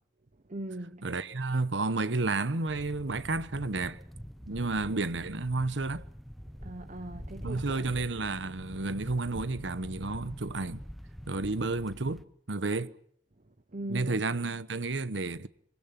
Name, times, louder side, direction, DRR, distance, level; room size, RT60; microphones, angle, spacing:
voice 1, 0.5-1.1 6.6-7.9 13.7-14.2, right 1 dB, 40° right, 1.1 m, -39 dB
voice 2, 1.0-4.0 4.5-6.0 7.4-10.8 11.3-13.0 13.9-15.5, right 3 dB, 80° right, 1.1 m, -31 dB
sound 1, 2.7-12.2, equal, ahead, 0.9 m, -45 dB
25.0 x 24.0 x 6.0 m
head